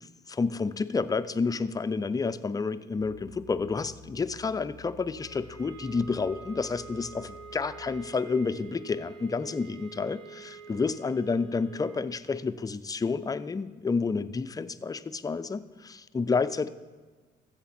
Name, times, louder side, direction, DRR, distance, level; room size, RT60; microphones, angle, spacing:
voice 1, 0.0-16.7, left 4 dB, 20° left, 12 dB, 0.4 m, -30 dB
sound 1, 3.0-8.2, left 2 dB, 80° right, 2.0 m, -52 dB
sound 2, 5.1-12.1, right 5 dB, 20° right, 2.8 m, -47 dB
14.0 x 7.2 x 4.3 m, 1.4 s
cardioid pair, 90°, 20 cm